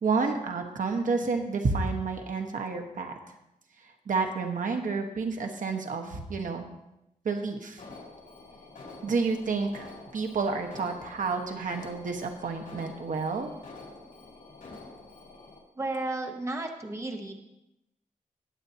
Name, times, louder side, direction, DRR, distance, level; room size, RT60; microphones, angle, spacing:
voice 1, 0.0-3.1 4.1-6.7 7.2-7.8 9.0-9.9 10.1-13.5, right 4 dB, 70° right, 4 dB, 1.3 m, -30 dB
Alarm, 7.8-15.6, left 3 dB, 80° left, 4.7 m, -47 dB
voice 2, 15.8-17.3, right 2 dB, 20° right, 3 dB, 1.0 m, -33 dB
19.5 x 8.1 x 2.9 m, 0.88 s
wide cardioid pair, 160°, 14 cm